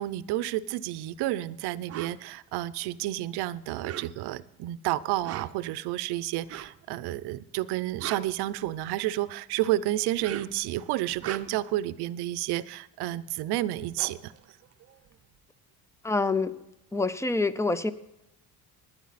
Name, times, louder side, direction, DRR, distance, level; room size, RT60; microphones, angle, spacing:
voice 1, 0.0-14.3, right 15 dB, 80° right, 17 dB, 0.7 m, -30 dB
sound 1, 1.9-2.2 3.7-4.4 5.1-5.7 6.5-6.8 7.7-9.0 10.0-10.7 11.1-11.8 13.3-13.4 13.6-15.3, right 11 dB, 40° right, 0.6 m, -40 dB
voice 2, 16.0-16.5 16.9-17.9, left 3 dB, 10° left, 15 dB, 0.5 m, -26 dB
16.0 x 10.5 x 4.1 m, 0.88 s
cardioid pair, 115°, 39 cm